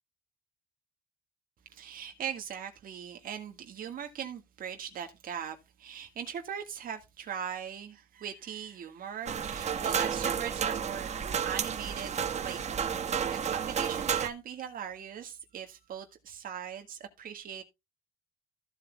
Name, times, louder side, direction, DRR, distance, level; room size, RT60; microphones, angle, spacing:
voice 1, 1.7-11.1 11.4-13.1 13.4-17.6, right 8 dB, 55° right, 1.8 m, -40 dB
sound 1, 9.3-14.3, right 7 dB, 40° right, 1.5 m, -31 dB
14.5 x 8.0 x 2.3 m
cardioid pair, 110°, 17 cm